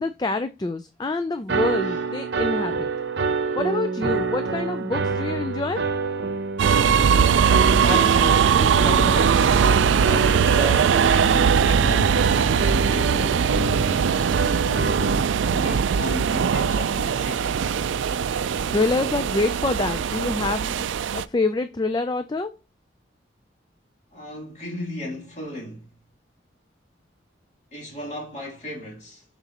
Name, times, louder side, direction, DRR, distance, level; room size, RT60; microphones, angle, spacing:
voice 1, 0.0-2.9 3.5-5.8 18.7-20.9 21.1-22.5, left 3 dB, 20° left, 0.3 m, -26 dB
sound 1, 1.5-15.2, right 4 dB, 70° right, 0.8 m, -27 dB
sound 2, 6.6-21.2, right 7 dB, 85° right, 0.4 m, -20 dB
voice 2, 7.4-14.4 15.5-17.5 24.1-25.9 27.7-29.2, equal, 40° left, 2.8 m, -35 dB
7.7 x 5.9 x 2.9 m
head